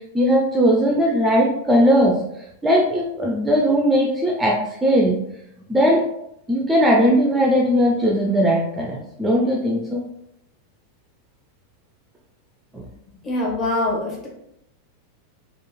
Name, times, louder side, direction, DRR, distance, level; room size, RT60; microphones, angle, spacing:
voice 1, 0.1-2.2 2.6-5.2 5.7-6.0 6.5-10.0 12.7-12.8, equal, 10° right, -2 dB, 0.4 m, -18 dB
voice 2, 13.2-14.3, left 2 dB, 25° left, -3 dB, 0.9 m, -23 dB
2.9 x 2.4 x 2.2 m, 0.79 s
figure-of-eight pair, 90°, 0 cm